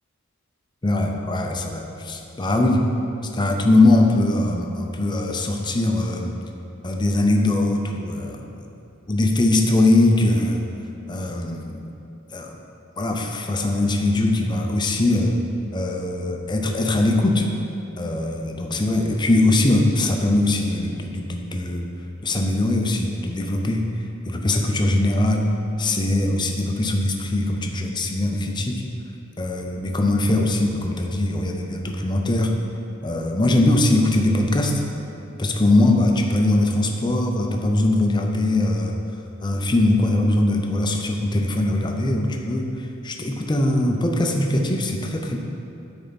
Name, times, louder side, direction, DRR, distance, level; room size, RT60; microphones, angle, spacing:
voice 1, 0.8-2.9 3.3-6.3 6.8-8.6 9.1-10.6 11.1-11.8 12.3-12.6 13.0-15.4 15.7-17.5 18.0-21.9 22.2-23.8 24.3-25.5 25.8-28.8 29.4-32.5 33.0-34.8 35.4-38.9 39.4-42.7 43.0-45.4, left 2 dB, 20° left, 2 dB, 0.6 m, -21 dB
10.0 x 4.5 x 4.1 m, 2.7 s
head